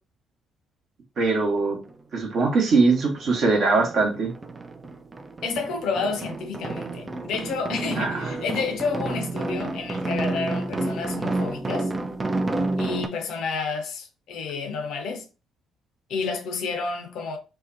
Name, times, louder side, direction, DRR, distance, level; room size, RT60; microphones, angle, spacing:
voice 1, 1.2-1.8 2.1-4.3 8.0-8.3, right 3 dB, 55° right, 0.9 m, -21 dB
sound 1, 1.9-2.0 2.3-3.5 3.8-13.1, right 2 dB, 30° right, 0.3 m, -30 dB
voice 2, 5.4-11.9 12.8-15.2 16.1-17.4, left 4 dB, 60° left, 0.5 m, -30 dB
2.6 x 2.1 x 2.5 m
figure-of-eight pair, 45°, 0 cm